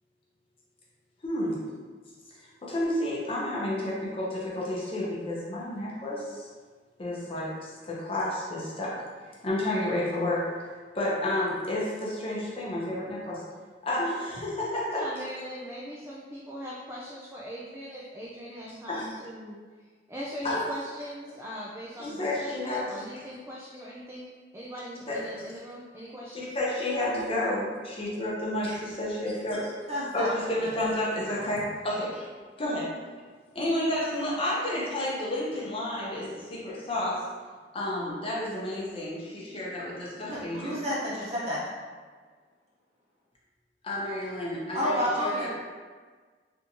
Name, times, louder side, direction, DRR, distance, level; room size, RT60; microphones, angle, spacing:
voice 1, 1.2-1.7 2.4-6.5 7.0-8.9 9.4-10.4 10.9-13.4 13.8-15.0 18.9-19.1 20.4-20.7 22.0-23.1 25.1-25.2 26.3-29.7 30.1-32.2 32.6-32.8 33.5-37.2 37.7-40.8 43.8-45.5, left 1 dB, 30° left, -5 dB, 0.7 m, -31 dB
voice 2, 14.9-26.6, equal, 15° right, -5 dB, 0.3 m, -40 dB
voice 3, 29.9-30.3 40.3-41.6 44.7-45.5, equal, 40° right, -8 dB, 1.0 m, -29 dB
3.4 x 2.7 x 2.8 m, 1.5 s
head